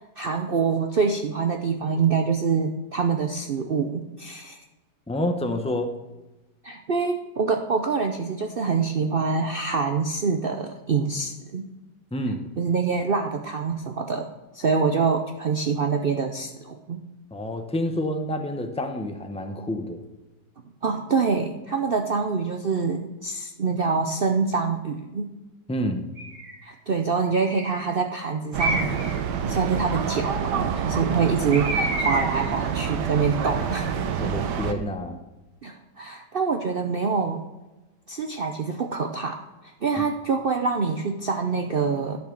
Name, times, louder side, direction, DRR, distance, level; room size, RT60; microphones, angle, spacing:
voice 1, 0.2-4.6 6.6-11.6 12.6-14.3 14.5-17.0 20.8-25.3 26.6-29.1 29.4-34.0 35.6-37.4 38.1-39.4 39.8-42.2, right 5 dB, 65° right, 4 dB, 0.5 m, -25 dB
voice 2, 5.1-5.9 12.1-12.4 17.3-20.0 25.7-26.1 33.4-33.5 34.2-35.2, left 1 dB, 10° left, 5 dB, 0.3 m, -28 dB
Bird, 26.2-26.6 27.4-27.9 28.6-29.2 31.5-32.5, right 1 dB, 40° right, 2.3 m, -29 dB
sound 1, 28.5-34.7, right 7 dB, 80° right, 1.4 m, -27 dB
10.5 x 6.1 x 5.9 m, 1.1 s
omnidirectional pair, 1.8 m